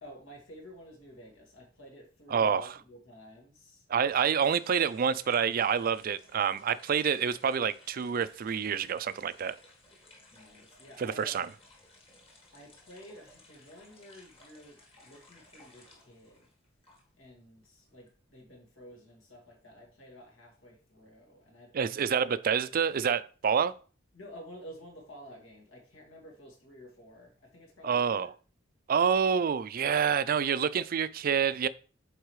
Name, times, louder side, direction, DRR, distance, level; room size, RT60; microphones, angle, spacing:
voice 1, 0.0-3.8 10.3-11.5 12.5-16.5 17.2-22.0 24.1-28.3, equal, 80° left, 2.3 m, -51 dB
voice 2, 2.3-2.8 3.9-9.5 11.0-11.5 21.7-23.7 27.8-28.3 28.9-31.7, right 7 dB, 45° right, 0.4 m, -27 dB
sound 1, 4.1-17.3 17.6-18.8, left 2 dB, 30° left, 1.6 m, -59 dB
8.1 x 4.0 x 3.2 m
head